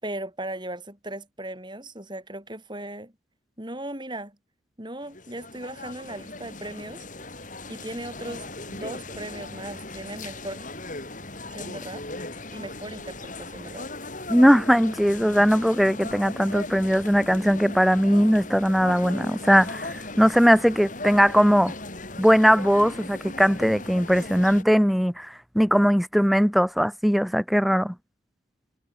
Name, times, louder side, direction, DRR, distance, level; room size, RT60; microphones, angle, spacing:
voice 1, 0.0-3.1 3.6-4.4 4.8-7.0 7.7-10.7 11.5-12.0 12.5-13.9, right 1 dB, 25° right, 5.9 m, -37 dB
sound 1, 5.0-24.6, left 2 dB, 40° left, 7.5 m, -38 dB
voice 2, 14.3-21.7 22.2-27.9, equal, ahead, 0.9 m, -20 dB
head